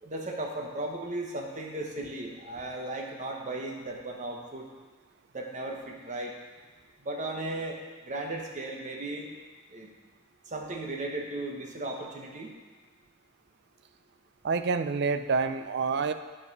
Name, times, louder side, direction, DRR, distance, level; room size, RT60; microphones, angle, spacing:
voice 1, 0.0-4.6 5.3-6.3 7.0-7.8 8.0-9.3 9.7-9.9 10.5-12.5, right 2 dB, 35° right, 0 dB, 1.2 m, -36 dB
voice 2, 14.4-16.1, right 4 dB, 55° right, 9 dB, 0.4 m, -27 dB
9.7 x 5.6 x 5.4 m, 1.4 s
head